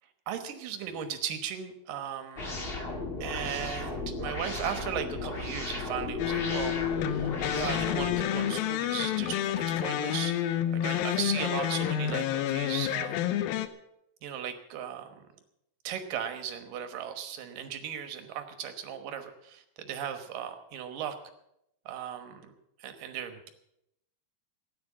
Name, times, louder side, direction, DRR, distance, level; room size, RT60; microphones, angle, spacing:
voice 1, 0.3-2.7 3.2-6.8 7.0-10.4 10.8-13.3 14.2-15.3 15.8-21.2 21.9-22.5 22.8-23.5, right 9 dB, 70° right, 8 dB, 2.8 m, -37 dB
sound 1, 2.4-8.2, left 3 dB, 35° left, 1.0 m, -35 dB
sound 2, 6.2-13.7, left 11 dB, 80° left, 2.5 m, -29 dB
14.0 x 10.0 x 7.4 m, 0.80 s
omnidirectional pair, 4.2 m